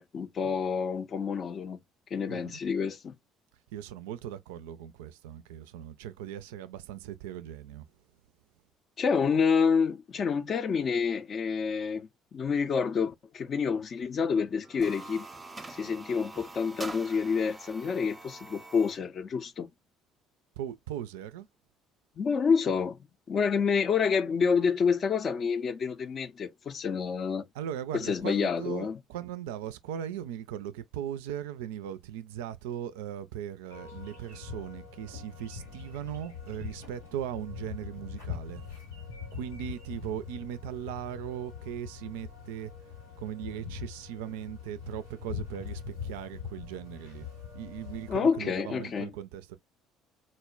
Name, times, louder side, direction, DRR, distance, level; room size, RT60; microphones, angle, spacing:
voice 1, 0.0-1.8 2.1-3.2 9.0-15.3 15.7-19.7 22.2-23.0 23.3-27.5 27.9-29.0 48.1-49.1, left 6 dB, 40° left, 0.4 m, -28 dB
voice 2, 3.7-7.9 20.6-21.5 27.6-38.6 39.3-42.7 43.2-47.3 47.5-49.6, right 10 dB, 70° right, 0.3 m, -39 dB
sound 1, 14.6-19.0, right 3 dB, 20° right, 0.6 m, -45 dB
sound 2, 33.7-48.2, left 6 dB, 90° left, 1.3 m, -42 dB
4.1 x 2.1 x 2.3 m
figure-of-eight pair, 55°, 0 cm